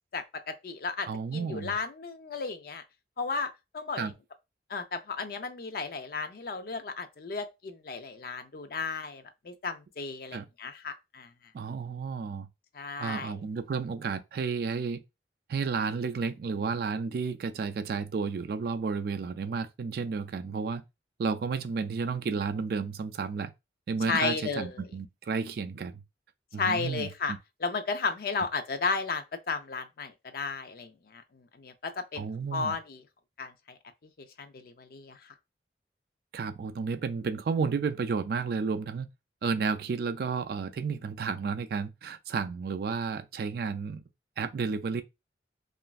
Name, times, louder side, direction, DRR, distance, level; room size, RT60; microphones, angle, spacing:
voice 1, 0.1-2.8 3.2-4.1 4.7-11.3 12.7-13.4 24.1-24.9 26.6-27.3 27.6-33.0 33.4-33.8 34.2-35.3, left 4 dB, 55° left, 0.4 m, -34 dB
voice 2, 1.1-1.7 4.0-4.1 10.3-10.5 11.5-12.5 13.0-15.0 15.5-20.8 21.2-23.5 23.9-26.0 26.5-27.1 32.2-32.7 36.3-39.1 39.4-44.0 44.4-45.0, right 5 dB, 55° right, 0.3 m, -32 dB
3.0 x 2.5 x 2.3 m
head